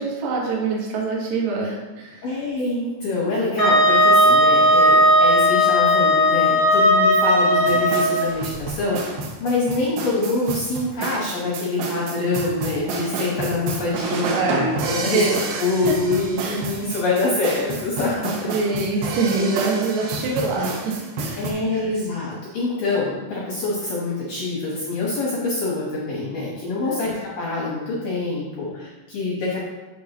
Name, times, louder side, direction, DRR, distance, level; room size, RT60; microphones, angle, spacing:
voice 1, 0.0-2.4 14.2-14.7 15.1-16.0 16.4-16.6 18.4-21.8 26.9-27.1, right 3 dB, 70° right, -3 dB, 1.7 m, -25 dB
voice 2, 2.2-9.1 9.4-15.2 15.6-18.7 21.4-29.7, left 3 dB, 75° left, -5 dB, 2.0 m, -25 dB
Wind instrument woodwind instrument, 3.6-8.3, equal, 40° right, 1.7 m, -16 dB
sound 1, 7.6-21.5, right 3 dB, 90° right, 2.2 m, -29 dB
7.2 x 6.4 x 2.9 m, 1.1 s
omnidirectional pair, 5.6 m